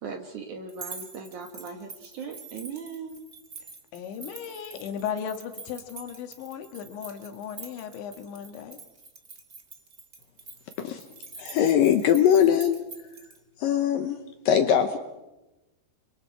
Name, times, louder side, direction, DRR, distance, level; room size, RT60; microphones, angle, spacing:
voice 1, 0.0-3.2, right 5 dB, 60° right, 2.2 m, -38 dB
sound 1, 0.7-13.4, right 4 dB, 85° right, 0.7 m, -45 dB
voice 2, 3.9-8.8, left 8 dB, 90° left, 3.9 m, -36 dB
voice 3, 11.4-12.8 13.6-14.2 14.5-15.0, left 9 dB, 75° left, 2.2 m, -21 dB
30.0 x 24.5 x 4.7 m
omnidirectional pair, 5.1 m